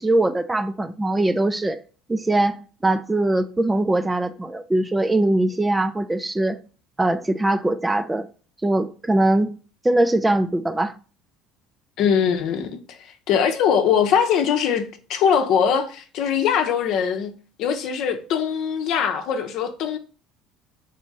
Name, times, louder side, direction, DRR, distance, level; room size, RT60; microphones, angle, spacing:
voice 1, 0.0-1.8 2.1-6.6 7.0-8.3 8.6-9.5 9.8-10.9, right 1 dB, 15° right, 0.4 m, -21 dB
voice 2, 12.0-13.0 13.3-17.3 17.6-20.0, left 7 dB, 65° left, 0.7 m, -21 dB
4.1 x 2.7 x 4.7 m
supercardioid pair, 85°, 0 cm